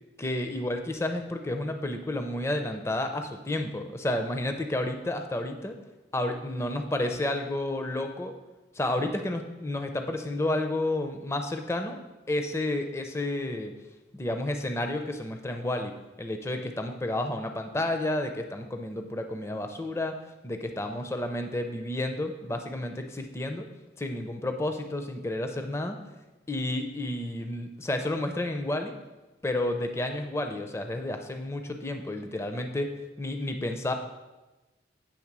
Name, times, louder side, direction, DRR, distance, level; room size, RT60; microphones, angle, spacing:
voice 1, 0.2-5.8 6.1-8.3 8.7-12.0 12.3-13.7 14.1-15.9 16.2-20.2 20.4-23.7 24.0-26.0 26.5-28.9 29.4-33.9, left 1 dB, 15° left, 5 dB, 0.4 m, -31 dB
8.4 x 3.4 x 6.0 m, 1.1 s
head